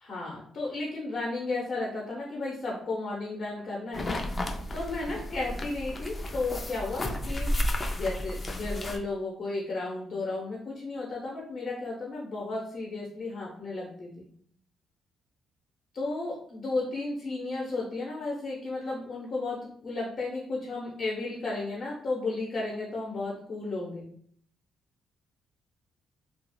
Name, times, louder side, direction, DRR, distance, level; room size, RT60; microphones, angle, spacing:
voice 1, 0.0-4.0 4.7-14.3 15.9-19.6 19.8-24.0, left 2 dB, 55° left, -4 dB, 0.9 m, -33 dB
sound 1, 3.9-9.0, left 1 dB, 30° left, 0.4 m, -32 dB
2.3 x 2.3 x 3.1 m, 0.62 s
cardioid pair, 90°, 0 cm